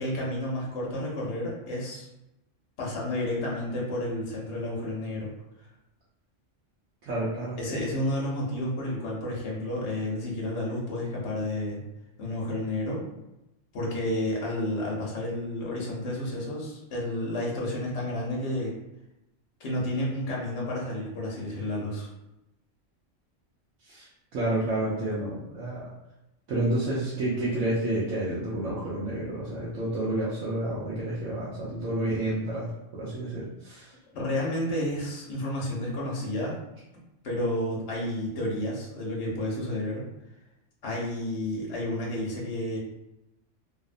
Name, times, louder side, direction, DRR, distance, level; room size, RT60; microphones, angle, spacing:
voice 1, 0.0-2.1 2.8-5.3 7.6-11.8 12.2-13.0 13.7-18.7 19.6-22.1 34.1-36.6 37.2-40.0 40.8-42.8, left 1 dB, 65° left, -3 dB, 1.0 m, -31 dB
voice 2, 7.1-7.6 23.9-25.9 26.5-32.7 32.9-33.9, right 1 dB, 80° right, -7 dB, 1.0 m, -30 dB
2.7 x 2.1 x 2.4 m, 0.92 s
omnidirectional pair, 1.3 m